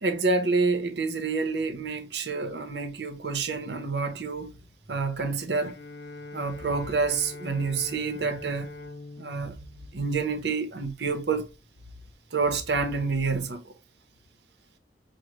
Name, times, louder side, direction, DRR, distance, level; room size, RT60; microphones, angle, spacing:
voice 1, 0.0-4.5 4.9-5.8 6.3-8.7 9.2-9.5 9.9-11.5 12.3-13.6, right 4 dB, 70° right, 0.8 m, -28 dB
Bowed string instrument, 5.6-10.9, left 2 dB, 75° left, 0.7 m, -43 dB
6.2 x 2.2 x 3.0 m
head